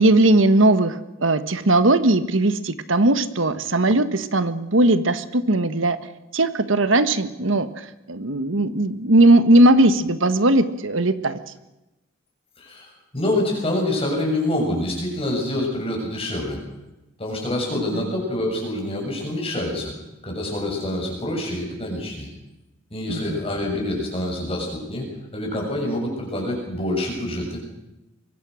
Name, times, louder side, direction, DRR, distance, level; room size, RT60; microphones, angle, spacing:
voice 1, 0.0-6.0 6.3-11.4 17.7-18.1 23.1-23.4, right 2 dB, 70° right, 12 dB, 1.4 m, -18 dB
voice 2, 12.6-16.6 17.2-19.9 20.2-22.3 22.9-27.6, left 1 dB, 30° left, 0 dB, 7.0 m, -26 dB
24.5 x 23.0 x 6.4 m, 0.96 s
head